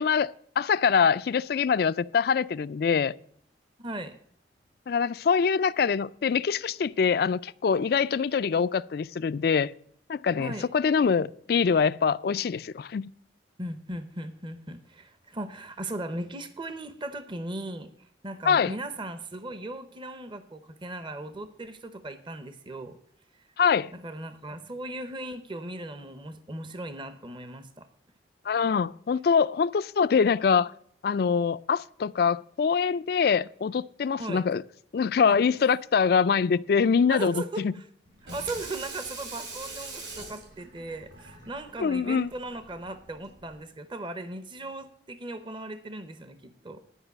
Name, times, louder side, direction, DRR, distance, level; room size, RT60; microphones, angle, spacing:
voice 1, 0.0-3.1 4.9-9.7 10.1-13.1 18.5-18.7 23.6-23.9 28.5-30.7 31.0-34.6 34.9-37.7 41.8-42.3, left 6 dB, 55° left, 0.3 m, -24 dB
voice 2, 3.8-4.1 10.4-10.7 13.6-23.0 23.9-27.9 34.2-34.4 35.3-35.4 37.1-37.8 38.2-46.8, right 2 dB, 25° right, 0.8 m, -38 dB
Water tap faucet / Sink (filling or washing), 38.1-43.6, right 3 dB, 80° right, 5.0 m, -43 dB
11.0 x 5.4 x 7.9 m
head